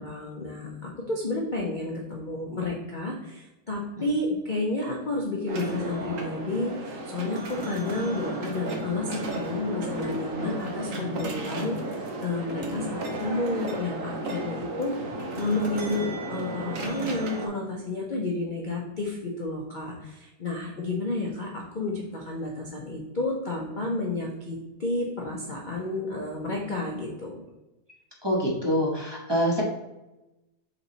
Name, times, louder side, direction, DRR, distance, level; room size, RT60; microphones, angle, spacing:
voice 1, 0.0-14.9 15.4-27.4, left 2 dB, 65° left, -2 dB, 0.4 m, -31 dB
sound 1, 5.5-17.5, right 1 dB, 55° right, 1.0 m, -33 dB
voice 2, 28.2-29.6, equal, 20° right, -4 dB, 0.8 m, -25 dB
5.8 x 4.0 x 4.0 m, 0.99 s
omnidirectional pair, 2.1 m